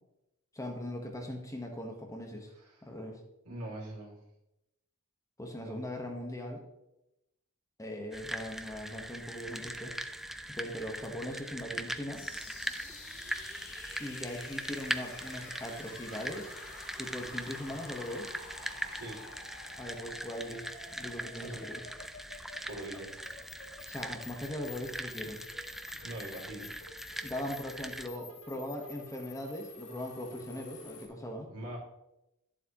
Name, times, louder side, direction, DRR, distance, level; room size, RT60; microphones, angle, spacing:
voice 1, 0.5-2.5 2.8-3.2 5.4-6.6 7.8-9.9 10.4-12.2 14.0-16.5 17.0-18.3 19.8-20.6 20.9-21.8 23.9-25.4 27.2-31.5, left 1 dB, 15° left, 2 dB, 1.2 m, -40 dB
voice 2, 3.4-4.2 5.6-5.8 18.9-19.2 21.3-21.7 22.6-23.2 26.0-26.7 31.5-31.8, right 1 dB, 85° right, -3 dB, 2.9 m, -42 dB
sound 1, 8.1-28.1, right 1 dB, ahead, 0.3 m, -41 dB
sound 2, 12.1-31.1, left 4 dB, 75° left, 2.2 m, -50 dB
11.0 x 7.5 x 3.0 m, 0.89 s
head